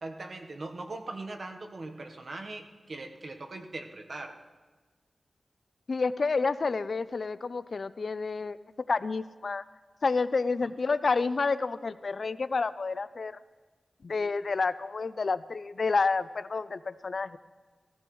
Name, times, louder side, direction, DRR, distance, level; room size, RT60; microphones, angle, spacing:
voice 1, 0.0-4.4, right 2 dB, 60° right, 4 dB, 1.1 m, -40 dB
voice 2, 5.9-8.6 8.9-9.6 10.0-13.4 14.0-17.4, left 4 dB, 65° left, 15 dB, 0.4 m, -29 dB
17.0 x 14.0 x 3.1 m, 1.4 s
wide cardioid pair, 85°, 0 cm